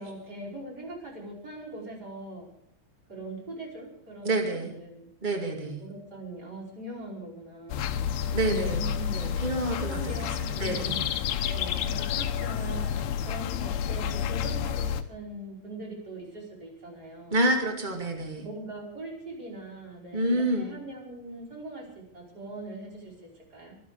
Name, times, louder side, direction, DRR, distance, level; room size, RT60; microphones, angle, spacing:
voice 1, 0.0-2.5 3.1-5.1 5.3-7.9 8.4-9.1 9.8-11.0 11.5-17.5 18.4-23.7, right 1 dB, 20° right, -1 dB, 5.1 m, -41 dB
voice 2, 4.2-4.7 5.2-5.8 8.3-11.0 17.3-18.4 20.1-20.7, right 1 dB, 80° right, 3 dB, 0.4 m, -28 dB
sound 1, 7.7-15.0, left 8 dB, 70° left, 2.6 m, -30 dB
25.0 x 11.0 x 5.0 m, 0.75 s
omnidirectional pair, 5.3 m